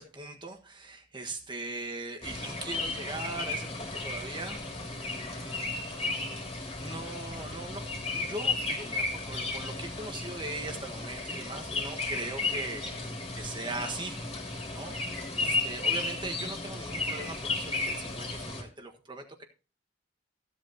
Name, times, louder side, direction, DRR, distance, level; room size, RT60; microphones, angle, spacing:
voice 1, 0.0-4.6 4.9-6.4 6.8-13.0 13.3-14.2 14.7-15.0 15.4-19.4, right 2 dB, 25° right, 4 dB, 1.5 m, -40 dB
sound 1, 2.2-18.6, left 3 dB, 35° left, 2.8 m, -34 dB
15.5 x 8.1 x 2.9 m, 0.33 s
head